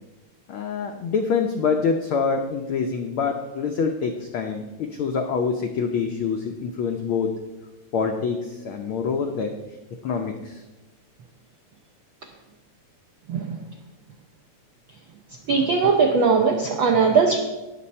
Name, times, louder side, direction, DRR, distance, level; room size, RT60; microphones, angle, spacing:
voice 1, 0.5-7.3 7.9-9.5 10.0-10.6, left 5 dB, 80° left, 4 dB, 1.2 m, -25 dB
voice 2, 13.3-13.6 15.5-17.4, right 5 dB, 75° right, 3 dB, 1.1 m, -19 dB
18.5 x 6.9 x 4.3 m, 1.1 s
omnidirectional pair, 3.3 m